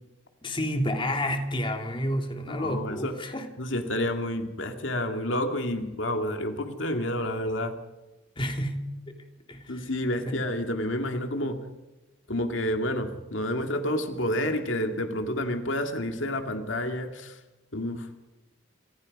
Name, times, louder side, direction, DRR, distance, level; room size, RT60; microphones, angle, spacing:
voice 1, 0.4-3.5 8.4-8.9 9.5-9.8 10.3-10.4, equal, 25° left, 4 dB, 2.7 m, -30 dB
voice 2, 2.5-3.1 3.6-7.7 9.7-11.6 12.3-17.4 17.7-18.1, left 1 dB, 70° left, 5 dB, 2.3 m, -29 dB
29.0 x 26.0 x 5.4 m, 1.1 s
head